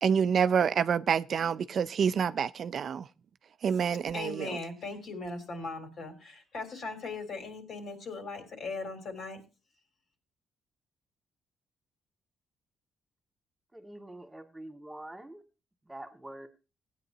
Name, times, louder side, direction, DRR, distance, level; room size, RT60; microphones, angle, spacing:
voice 1, 0.0-3.1 3.6-4.6, right 7 dB, 55° right, 0.5 m, -27 dB
voice 2, 4.1-9.4, left 3 dB, 60° left, 3.7 m, -39 dB
voice 3, 13.7-15.4 15.9-16.5, right 1 dB, 10° right, 2.1 m, -45 dB
16.5 x 9.3 x 2.9 m
cardioid pair, 90°, 0 cm